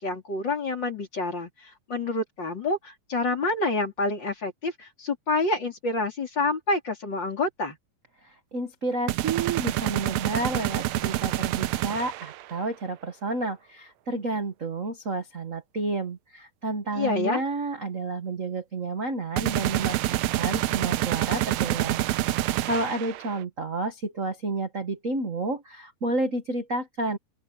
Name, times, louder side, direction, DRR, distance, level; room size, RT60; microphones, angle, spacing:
voice 1, 0.0-7.8 16.9-17.4, left 3 dB, 35° left, 4.4 m, -28 dB
voice 2, 8.2-20.0 20.3-27.2, right 2 dB, 35° right, 1.3 m, -30 dB
sound 1, 9.1-12.4 19.4-23.4, right 15 dB, 75° right, 1.9 m, -27 dB
open air
omnidirectional pair, 3.3 m